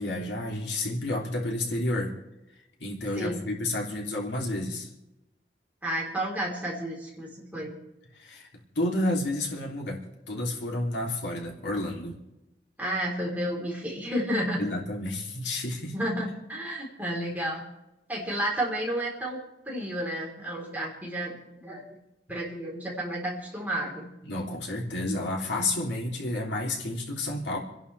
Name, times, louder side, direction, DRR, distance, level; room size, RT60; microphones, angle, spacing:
voice 1, 0.0-2.1 2.8-4.9 8.1-8.5 8.7-12.2 14.6-15.9 24.2-27.6, left 1 dB, 90° left, -1 dB, 3.3 m, -30 dB
voice 2, 5.8-7.7 12.8-14.6 15.9-17.6 18.1-19.4 19.7-21.4 21.6-21.8 22.3-24.1, right 1 dB, 10° right, -3 dB, 4.1 m, -31 dB
29.5 x 11.0 x 3.5 m, 0.91 s
head